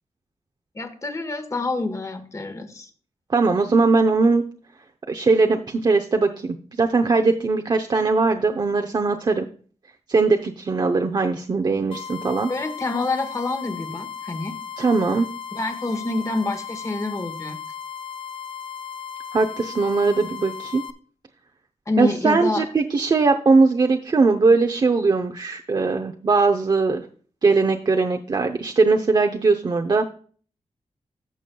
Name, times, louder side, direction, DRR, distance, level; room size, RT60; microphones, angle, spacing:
voice 1, 0.7-2.9 12.5-14.5 15.5-17.6 21.9-22.7, left 3 dB, 25° left, 8 dB, 1.5 m, -27 dB
voice 2, 3.3-4.4 5.1-9.5 10.1-12.5 14.8-15.3 19.3-20.8 22.0-27.1 27.4-30.0, right 3 dB, 40° right, 5 dB, 0.7 m, -20 dB
sound 1, 11.9-20.9, left 7 dB, 45° left, 0.7 m, -36 dB
14.5 x 7.0 x 2.3 m, 0.44 s
wide cardioid pair, 180°, 12 cm